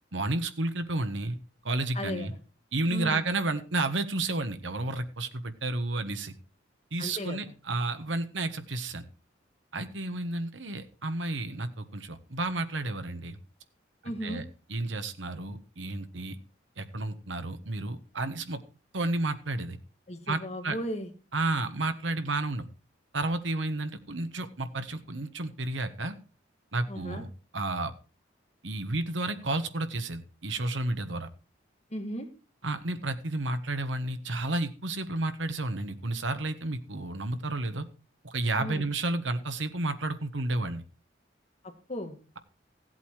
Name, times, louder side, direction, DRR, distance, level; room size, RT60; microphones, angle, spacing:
voice 1, 0.1-1.4 1.6-2.3 2.7-6.3 6.9-9.0 9.7-13.4 14.0-16.3 16.8-18.6 18.9-19.8 20.3-20.8 21.3-22.7 23.1-26.2 26.7-27.3 27.5-27.9 28.6-31.3 32.6-37.8 38.2-40.8, right 2 dB, 85° right, 9 dB, 1.4 m, -31 dB
voice 2, 1.9-2.4 2.9-3.2 7.0-7.5 14.0-14.4 20.1-21.1 26.9-27.2 31.9-32.3 38.6-38.9 41.6-42.2, equal, 35° left, 5 dB, 2.0 m, -36 dB
15.5 x 8.2 x 4.7 m, 0.35 s
head